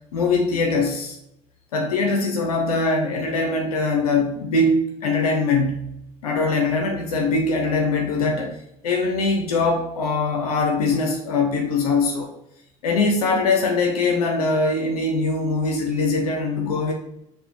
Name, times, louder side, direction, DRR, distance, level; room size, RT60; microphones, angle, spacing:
voice 1, 0.1-1.2 1.7-5.9 6.2-8.5 8.8-12.3 12.8-16.9, left 3 dB, 85° left, 2 dB, 0.5 m, -22 dB
4.7 x 2.2 x 3.1 m, 0.81 s
hypercardioid pair, 70°, 19 cm